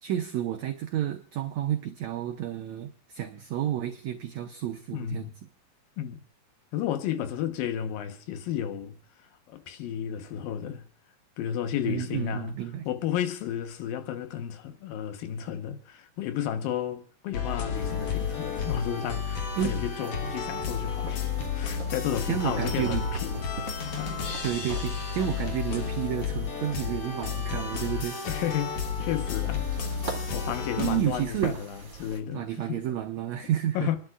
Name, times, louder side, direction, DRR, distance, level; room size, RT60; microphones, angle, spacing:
voice 1, 0.0-5.3 11.8-12.9 19.6-19.7 22.3-23.0 24.4-28.2 30.8-31.6 32.3-33.9, right 11 dB, 80° right, 1.6 m, -31 dB
voice 2, 4.9-5.3 6.0-6.2 6.7-9.0 9.5-10.9 11.4-12.6 12.9-21.3 21.5-23.4 24.0-24.2 28.3-29.7 30.3-32.8 33.7-34.0, left 10 dB, 75° left, 2.9 m, -32 dB
sound 1, 17.3-31.0, left 6 dB, 55° left, 1.7 m, -32 dB
sound 2, 17.7-32.2, right 4 dB, 35° right, 2.3 m, -43 dB
29.0 x 11.5 x 2.5 m
omnidirectional pair, 4.2 m